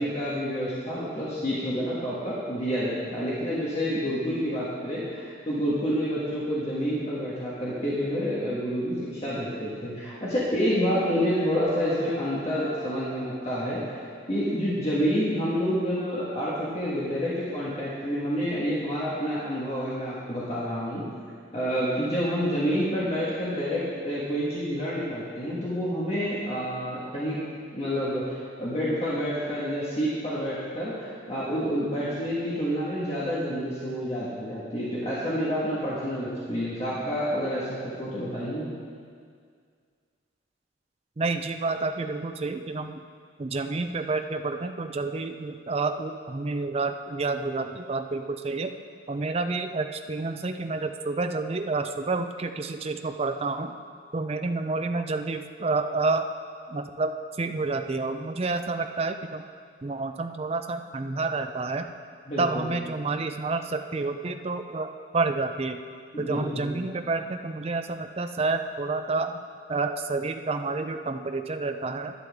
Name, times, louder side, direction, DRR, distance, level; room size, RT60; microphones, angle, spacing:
voice 1, 0.0-13.8 14.3-21.0 21.5-27.4 27.7-38.7 62.3-62.7 66.1-66.7, equal, 35° left, -9 dB, 1.6 m, -28 dB
sound 1, 11.6-16.4, equal, 15° left, 1.7 m, -46 dB
voice 2, 41.2-43.0 43.4-48.7 49.1-53.7 54.1-56.3 56.7-57.1 57.4-59.4 59.8-61.9 62.4-65.8 66.2-69.4 69.7-72.1, right 3 dB, 30° right, 7 dB, 0.4 m, -29 dB
11.0 x 10.5 x 3.6 m, 2.1 s
head